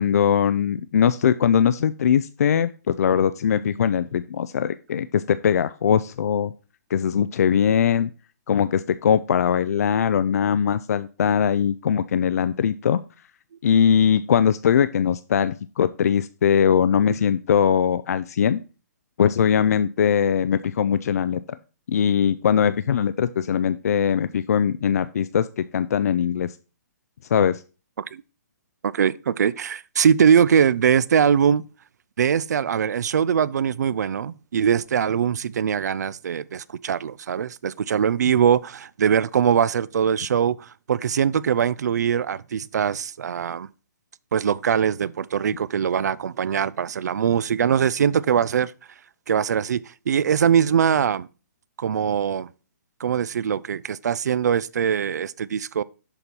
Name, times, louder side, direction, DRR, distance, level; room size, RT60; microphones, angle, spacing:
voice 1, 0.0-6.5 6.9-8.1 8.5-13.0 13.6-18.6 19.2-21.4 21.9-26.5 27.3-27.6, left 8 dB, 60° left, 0.4 m, -21 dB
voice 2, 28.8-31.6 32.2-43.7 44.3-48.7 49.3-49.8 50.1-51.3 51.8-52.5 53.0-55.8, right 8 dB, 70° right, 0.4 m, -22 dB
6.9 x 4.4 x 5.3 m
hypercardioid pair, 165°, 9 cm